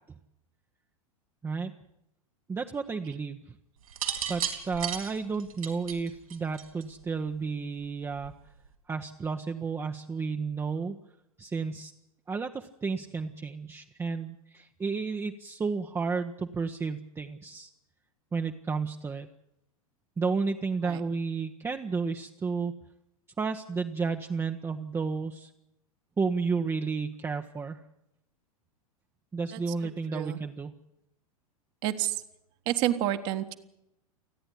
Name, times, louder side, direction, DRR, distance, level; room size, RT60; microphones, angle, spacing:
voice 1, 2.5-3.6 4.3-8.3 8.9-11.0 11.4-11.9 12.3-17.7 18.3-19.3 20.2-22.7 23.4-25.5 26.2-27.8 29.3-30.7, right 4 dB, 15° right, 4 dB, 0.9 m, -32 dB
sound 1, 3.9-7.0 8.1-8.5, right 8 dB, 70° right, 3.7 m, -34 dB
voice 2, 29.5-30.4 31.8-32.2 32.7-33.5, right 13 dB, 45° right, 6 dB, 1.5 m, -30 dB
28.5 x 10.0 x 9.9 m, 0.83 s
figure-of-eight pair, 95°, 19 cm